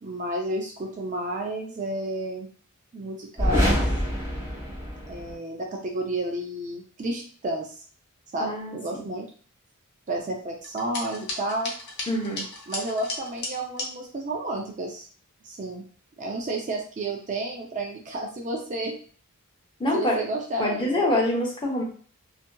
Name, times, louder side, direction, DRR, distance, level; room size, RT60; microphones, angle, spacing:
voice 1, 0.0-2.5 2.9-3.8 5.1-7.7 8.3-9.3 10.1-11.7 12.7-15.1 15.4-15.8 16.2-19.0 19.9-21.0, right 1 dB, 35° right, 1 dB, 0.4 m, -31 dB
sound 1, 3.4-5.4, equal, 15° right, 1.4 m, -25 dB
voice 2, 8.4-9.0 12.1-12.4 19.8-20.2 20.6-21.8, left 1 dB, 20° left, -3 dB, 0.8 m, -25 dB
sound 2, 10.6-13.9, left 2 dB, 50° left, 0.7 m, -35 dB
2.7 x 2.4 x 2.2 m, 0.44 s
head